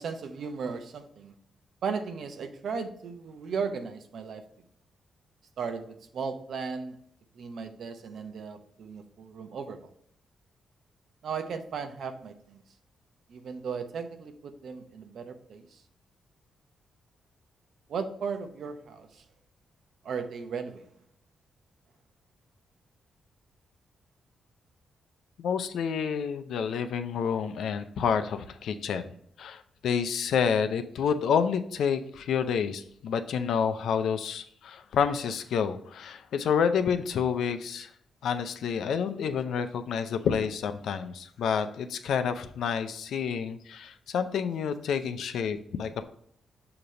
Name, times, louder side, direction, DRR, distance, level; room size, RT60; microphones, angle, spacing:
voice 1, 0.0-1.3 1.8-4.4 5.6-7.0 7.4-9.8 11.2-12.6 13.3-15.7 17.9-19.2 20.0-20.8, right 5 dB, 70° right, 7 dB, 0.7 m, -36 dB
voice 2, 25.4-29.0 29.4-37.9 38.2-46.0, left 7 dB, 80° left, 9 dB, 0.5 m, -29 dB
6.6 x 2.9 x 5.1 m, 0.68 s
cardioid pair, 110°, 0 cm